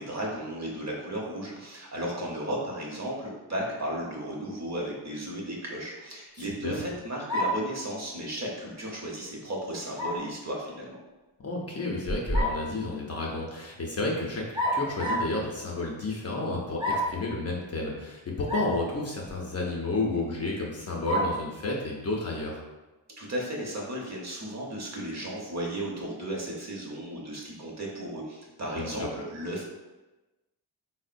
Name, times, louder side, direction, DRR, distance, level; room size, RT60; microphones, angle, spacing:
voice 1, 0.0-11.0 23.2-29.6, right 1 dB, 40° right, -2 dB, 0.8 m, -35 dB
voice 2, 6.4-6.8 11.4-22.6 28.8-29.1, left 2 dB, 35° left, -2 dB, 0.6 m, -31 dB
sound 1, 7.3-7.7 10.0-10.3 12.1-12.7 14.5-15.4 16.8-17.2 18.5-18.8 19.3-19.4 21.1-21.4, equal, 10° right, 0.6 m, -28 dB
3.5 x 2.1 x 2.5 m, 1.1 s
cardioid pair, 70°, 44 cm